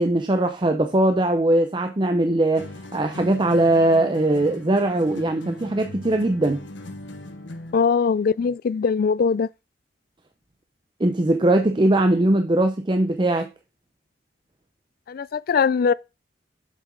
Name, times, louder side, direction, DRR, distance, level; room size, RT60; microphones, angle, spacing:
voice 1, 0.0-2.7 2.9-6.7 11.0-13.5, right 1 dB, 25° right, 0.6 m, -20 dB
sound 1, 2.6-7.9, left 1 dB, 80° left, 1.2 m, -39 dB
voice 2, 7.7-9.5 15.1-15.9, left 5 dB, 55° left, 0.4 m, -21 dB
7.4 x 7.3 x 3.8 m
head